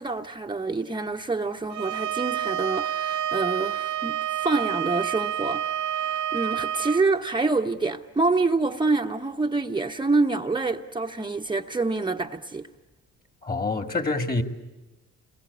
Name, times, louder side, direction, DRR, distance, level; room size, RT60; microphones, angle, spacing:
voice 1, 0.0-12.7, right 3 dB, 15° right, 0.9 m, -27 dB
Bowed string instrument, 1.7-7.0, right 10 dB, 70° right, 0.9 m, -28 dB
voice 2, 13.4-14.4, left 3 dB, 30° left, 2.6 m, -26 dB
29.0 x 23.5 x 8.4 m
cardioid pair, 90°, 30 cm